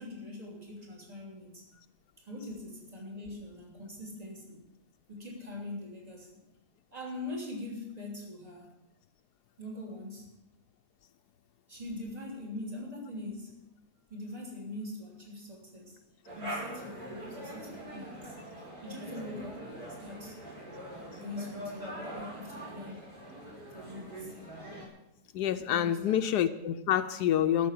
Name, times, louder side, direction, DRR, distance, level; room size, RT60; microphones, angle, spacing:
voice 1, 0.0-1.6 2.2-4.6 5.1-6.4 6.9-8.7 9.6-10.3 11.7-13.6 14.1-16.0 16.3-18.4 18.8-20.4 21.2-23.0 23.7-24.7 25.7-26.2, left 2 dB, 25° right, -2 dB, 3.0 m, -42 dB
sound 1, 16.2-24.9, right 1 dB, 65° right, 5.0 m, -43 dB
voice 2, 25.3-27.7, left 10 dB, 80° left, 8 dB, 1.2 m, -27 dB
13.0 x 7.0 x 9.3 m, 0.90 s
omnidirectional pair, 1.7 m